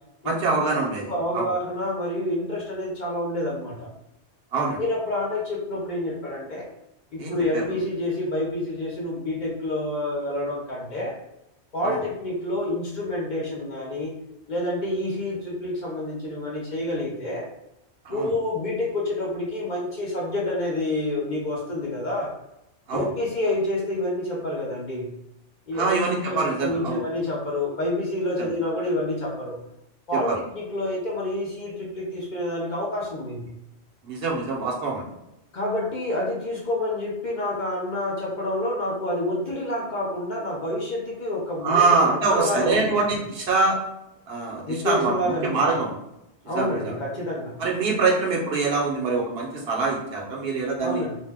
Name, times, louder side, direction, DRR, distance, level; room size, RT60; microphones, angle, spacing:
voice 1, 0.2-1.5 4.5-4.8 7.2-7.6 11.8-12.0 18.0-18.3 22.9-23.1 25.7-27.0 28.4-28.5 30.1-30.4 34.0-35.1 41.6-43.8 44.3-45.9 46.5-46.9 47.6-51.0, right 3 dB, 65° right, -2 dB, 0.8 m, -24 dB
voice 2, 1.1-3.9 4.8-6.7 7.1-11.2 11.7-14.1 14.5-17.5 18.1-22.3 22.9-25.1 25.7-26.0 26.2-29.6 30.1-33.5 35.5-42.9 44.7-45.6 46.5-47.6 50.8-51.2, left 1 dB, 50° left, -4 dB, 0.7 m, -28 dB
2.7 x 2.1 x 3.3 m, 0.85 s
omnidirectional pair, 1.2 m